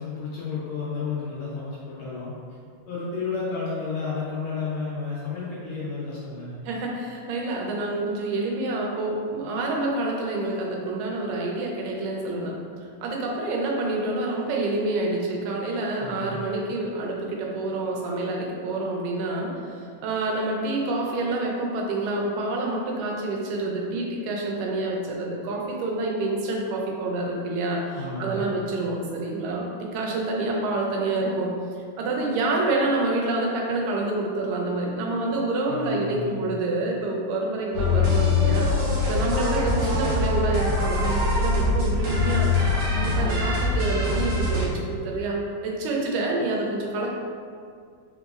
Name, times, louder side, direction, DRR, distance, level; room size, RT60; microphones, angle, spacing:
voice 1, 0.0-2.3 2.9-6.6 16.0-16.4 28.0-28.5 35.7-36.4, left 4 dB, 75° left, -8 dB, 1.6 m, -32 dB
voice 2, 6.7-12.6 13.0-31.5 32.0-47.1, right 2 dB, 85° right, -1 dB, 2.3 m, -27 dB
sound 1, 37.7-44.7, left 3 dB, 70° right, 1.3 m, -23 dB
4.5 x 3.9 x 2.4 m, 2.2 s
omnidirectional pair, 3.8 m